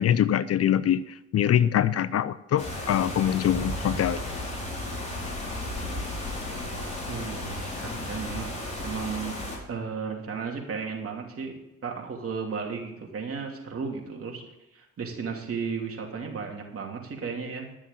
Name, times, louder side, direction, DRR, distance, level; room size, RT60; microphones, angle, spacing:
voice 1, 0.0-4.3, left 10 dB, 55° left, 16 dB, 0.6 m, -24 dB
sound 1, 2.6-9.6, left 1 dB, 25° left, 5.0 m, -34 dB
voice 2, 7.1-8.5 8.8-9.4 9.7-11.5 11.8-14.4 14.7-17.7, right 5 dB, 50° right, 1 dB, 3.0 m, -34 dB
12.5 x 7.0 x 7.3 m, 0.93 s
cardioid pair, 90°, 30 cm